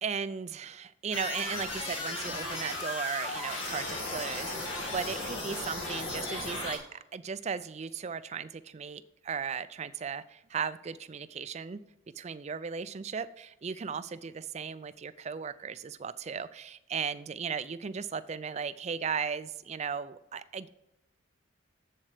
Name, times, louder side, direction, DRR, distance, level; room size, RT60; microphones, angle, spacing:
voice 1, 0.0-11.8 12.2-20.7, right 6 dB, 35° right, 15 dB, 0.4 m, -36 dB
sound 1, 1.1-6.8, left 2 dB, 85° left, 2.3 m, -36 dB
7.8 x 7.3 x 5.0 m, 0.89 s
head